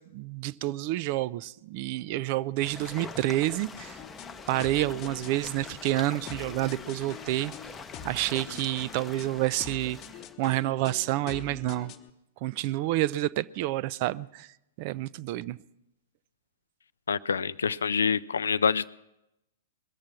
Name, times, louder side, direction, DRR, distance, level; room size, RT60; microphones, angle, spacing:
voice 1, 0.0-4.0 4.5-7.5 8.0-10.0 10.4-11.9 12.4-14.5 14.8-15.6, right 16 dB, 40° right, 0.4 m, -29 dB
sound 1, 2.6-10.3, left 5 dB, 15° left, 0.7 m, -44 dB
sound 2, 3.8-12.1, left 9 dB, 30° left, 1.0 m, -46 dB
voice 2, 17.1-18.9, left 6 dB, 70° left, 0.4 m, -26 dB
21.5 x 7.3 x 6.0 m
figure-of-eight pair, 105°, 0 cm